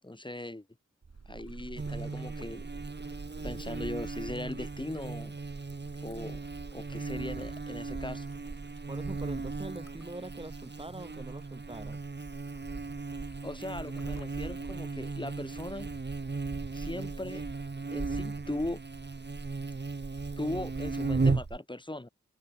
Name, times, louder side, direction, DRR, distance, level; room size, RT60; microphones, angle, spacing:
voice 1, 0.0-0.6 1.3-2.7 3.4-5.3 6.0-6.4 6.7-8.3 13.4-15.9 16.7-17.4 17.9-18.8 20.4-22.1, left 1 dB, 15° left, 1.4 m, -39 dB
sound 1, 1.0-3.4, right 4 dB, 65° right, 3.3 m, -50 dB
sound 2, 1.1-16.8, left 3 dB, 50° left, 6.9 m, -65 dB
Buzz, 1.8-21.6, right 3 dB, 35° right, 1.2 m, -36 dB
voice 2, 8.9-12.0, right 1 dB, 15° right, 2.4 m, -43 dB
wide cardioid pair, 85°, 31 cm